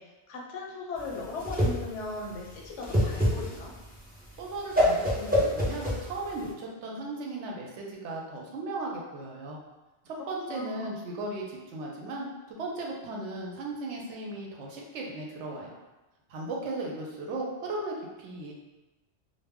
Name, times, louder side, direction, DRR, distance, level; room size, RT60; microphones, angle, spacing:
voice 1, 0.0-3.7 10.5-11.0, left 3 dB, 85° left, -1 dB, 0.9 m, -38 dB
Whoosh swoosh swish, 1.0-6.5, left 1 dB, 15° right, 0.4 m, -27 dB
voice 2, 4.4-9.6 10.0-15.8 16.3-18.5, right 2 dB, 80° right, -1 dB, 0.9 m, -36 dB
2.1 x 2.1 x 3.4 m, 1.1 s
omnidirectional pair, 1.2 m